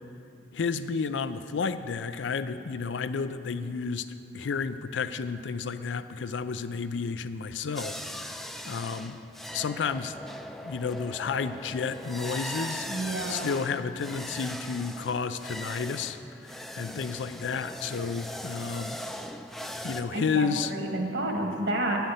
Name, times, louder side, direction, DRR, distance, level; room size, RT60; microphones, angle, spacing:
voice 1, 0.5-4.1 4.3-8.0 8.2-9.2 9.5-10.1 10.6-19.0 19.8-20.7, left 5 dB, 85° left, 12 dB, 0.4 m, -31 dB
sound 1, 7.8-20.0, equal, ahead, 0.4 m, -39 dB
voice 2, 12.9-13.5 20.0-22.1, right 1 dB, 70° right, 1 dB, 1.6 m, -30 dB
10.5 x 5.8 x 7.9 m, 2.7 s
head